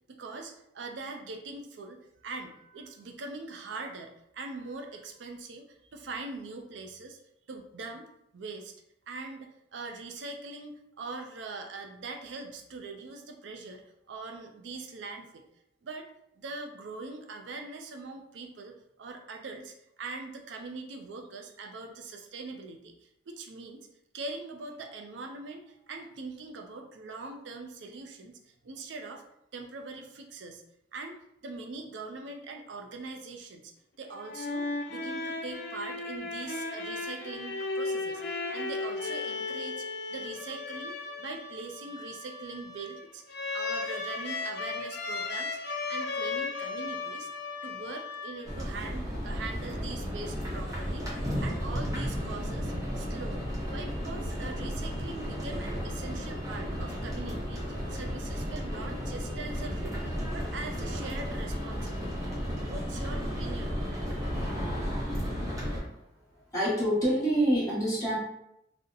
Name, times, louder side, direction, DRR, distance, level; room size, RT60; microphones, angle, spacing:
voice 1, 0.1-7.2 7.5-8.1 8.3-8.7 9.1-13.8 14.1-15.4 15.8-16.1 16.4-23.9 24.1-29.2 29.5-30.6 30.9-47.3 47.6-62.1 62.7-64.0, right 3 dB, 75° right, 3 dB, 0.4 m, -42 dB
sound 1, 34.1-48.7, left 3 dB, 55° left, 0.4 m, -36 dB
sound 2, 48.4-65.8, equal, 20° right, 0.8 m, -33 dB
voice 2, 65.1-66.0 66.5-68.1, right 1 dB, 20° left, -8 dB, 0.9 m, -28 dB
2.7 x 2.0 x 3.7 m, 0.80 s
head